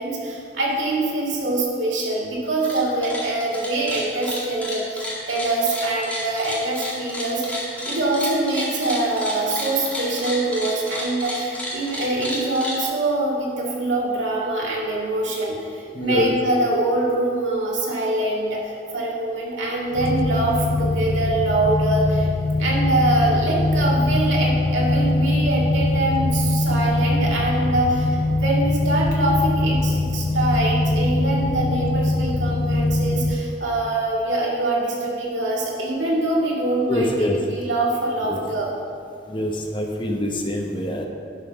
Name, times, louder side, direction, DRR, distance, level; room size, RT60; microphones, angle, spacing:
voice 1, 0.0-7.6 7.9-22.3 22.6-38.7, right 2 dB, 85° right, -4 dB, 2.3 m, -24 dB
sound 1, 2.5-2.8 3.0-12.8, left 1 dB, 10° left, 1.9 m, -31 dB
voice 2, 15.9-16.3 36.9-37.4 38.2-38.4 39.3-41.1, left 1 dB, 25° left, 2 dB, 0.9 m, -25 dB
sound 2, 19.9-33.3, left 2 dB, 55° left, 0.5 m, -22 dB
11.0 x 5.7 x 5.7 m, 2.4 s
head